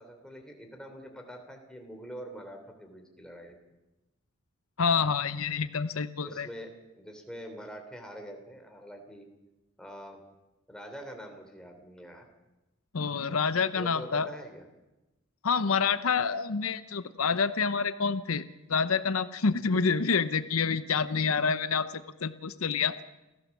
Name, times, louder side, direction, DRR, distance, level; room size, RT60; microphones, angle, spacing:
voice 1, 0.0-3.6 6.2-9.3 9.8-10.2 10.7-12.3 13.7-14.6, equal, 5° left, 3 dB, 3.4 m, -45 dB
voice 2, 4.8-6.5 12.9-14.3 15.4-18.4 18.7-23.0, left 5 dB, 80° left, 13 dB, 0.8 m, -27 dB
29.0 x 15.0 x 7.3 m, 1.0 s
head